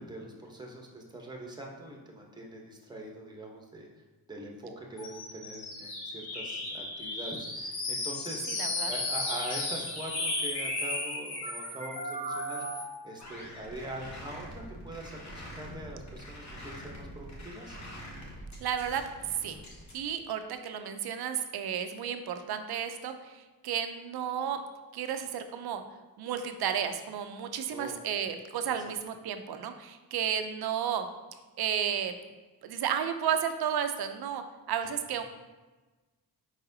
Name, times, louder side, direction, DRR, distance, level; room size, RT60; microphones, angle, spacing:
voice 1, 0.0-3.9 4.3-17.8 27.7-28.0 28.6-28.7 34.8-34.9, right 1 dB, 10° right, -1 dB, 0.9 m, -43 dB
sound 1, 5.0-13.0, left 2 dB, 80° left, 1.0 m, -34 dB
voice 2, 8.5-8.9 18.6-19.0 19.4-19.6 19.9-24.6 24.9-25.8 26.2-31.1 31.6-32.1 32.6-35.2, right 8 dB, 80° right, 8 dB, 0.5 m, -32 dB
sound 2, 13.2-19.9, equal, 45° left, 1.1 m, -45 dB
4.8 x 4.0 x 2.7 m, 1.2 s
cardioid pair, 90°, 38 cm